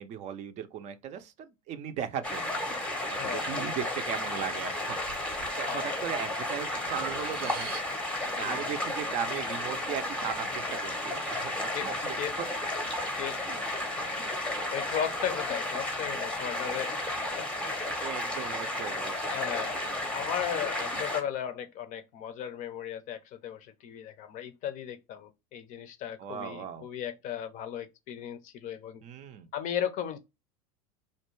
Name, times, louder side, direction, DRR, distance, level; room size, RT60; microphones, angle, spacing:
voice 1, 0.0-2.6 3.1-7.7 8.2-12.2 13.5-13.6 18.0-20.0 26.2-26.9 29.0-29.5, right 8 dB, 40° right, 0.4 m, -38 dB
sound 1, 2.2-21.2, left 1 dB, 5° left, 0.7 m, -33 dB
voice 2, 3.2-3.5 5.6-6.0 8.4-8.8 11.7-11.9 12.2-12.4 13.2-13.4 14.0-17.0 17.3-17.5 18.3-18.8 19.3-19.8 20.1-29.0 29.5-30.2, left 9 dB, 45° left, 0.5 m, -36 dB
Breathing, 5.0-5.5 6.0-8.2, right 7 dB, 85° right, 0.7 m, -42 dB
2.5 x 2.2 x 3.0 m
supercardioid pair, 110°, 18 cm